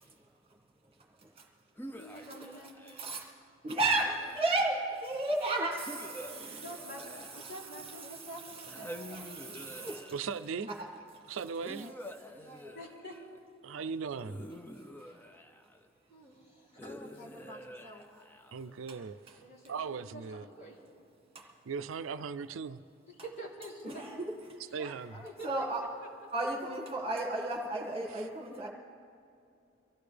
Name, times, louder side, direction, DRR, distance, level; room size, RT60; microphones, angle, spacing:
sound 1, 1.8-3.3 4.0-5.0 5.9-8.1 8.7-10.5 11.6-13.4 14.2-15.9 16.8-18.7, equal, 10° left, 0.6 m, -48 dB
voice 1, 1.9-2.7 6.5-7.0 7.3-8.1 12.7-13.2 19.4-20.8 23.2-24.0 25.2-25.7, right 1 dB, 60° left, -5 dB, 3.5 m, -46 dB
voice 2, 3.0-3.3 3.6-6.6 7.4-7.5 8.9-10.1 15.1-15.2 21.4-21.5 23.8-24.3 25.4-25.8 26.3-28.7, right 2 dB, 30° right, -1 dB, 1.8 m, -33 dB
voice 3, 8.0-9.5 11.7-11.9 12.3-12.8 16.1-18.0 24.6-25.8, right 1 dB, 30° left, -3 dB, 2.7 m, -51 dB
voice 4, 10.1-10.7 11.3-11.9 13.6-14.4 18.5-19.3 19.7-20.5 21.7-22.8 24.7-25.2 28.1-28.2, right 5 dB, 75° right, 12 dB, 0.4 m, -38 dB
24.0 x 15.0 x 3.4 m, 2.5 s
head